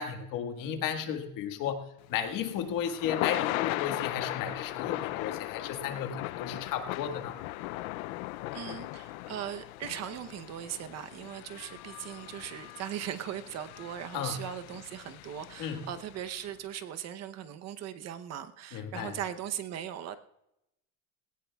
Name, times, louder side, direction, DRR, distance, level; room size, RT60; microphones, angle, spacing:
voice 1, 0.0-7.4 14.1-14.4 15.6-15.8 18.7-19.2, left 8 dB, 50° left, 6 dB, 1.7 m, -34 dB
Thunder / Rain, 2.1-16.3, left 18 dB, 90° left, 0.6 m, -38 dB
voice 2, 8.5-20.2, right 10 dB, 40° right, 9 dB, 0.8 m, -39 dB
19.5 x 17.5 x 2.3 m, 0.87 s
cardioid pair, 150°, 41 cm